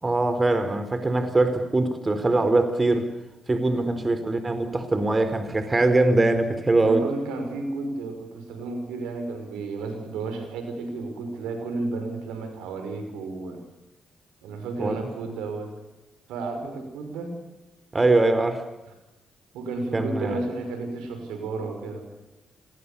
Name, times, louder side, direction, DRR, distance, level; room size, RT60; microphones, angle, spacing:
voice 1, 0.0-3.1 3.5-7.0 14.8-15.0 17.9-18.7 19.9-20.4, right 2 dB, 30° right, 9 dB, 4.2 m, -22 dB
voice 2, 3.7-4.2 6.8-13.6 14.4-15.7 16.3-17.4 19.5-22.1, right 3 dB, 80° right, 6 dB, 5.8 m, -32 dB
29.0 x 21.0 x 7.0 m, 0.96 s
hypercardioid pair, 45°, 0 cm